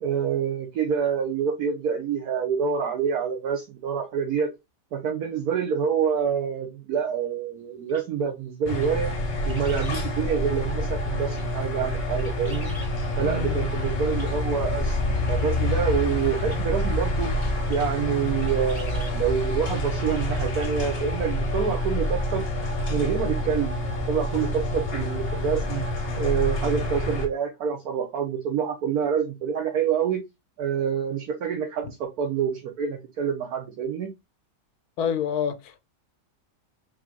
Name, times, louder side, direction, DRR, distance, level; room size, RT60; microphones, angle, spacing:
voice 1, 0.0-4.5 4.9-9.1 9.4-12.7 13.2-17.3 17.7-22.4 22.9-23.8 24.1-25.9 26.2-30.2 30.6-34.1, right 7 dB, 80° right, 1.3 m, -27 dB
sound 1, 7.9-8.0 8.7-8.9 9.3-10.1 11.2-11.5 12.0-12.9 14.1-14.3 15.3-15.4 16.4-16.6 17.7-17.8 18.1-18.2 18.4-19.2 20.5-20.7 21.0-21.1, left 1 dB, 25° left, 1.5 m, -45 dB
sound 2, 8.7-27.3, left 1 dB, 45° left, 1.1 m, -27 dB
voice 2, 13.2-13.6 35.0-35.8, left 7 dB, 85° left, 1.2 m, -28 dB
3.8 x 3.0 x 3.5 m
omnidirectional pair, 1.6 m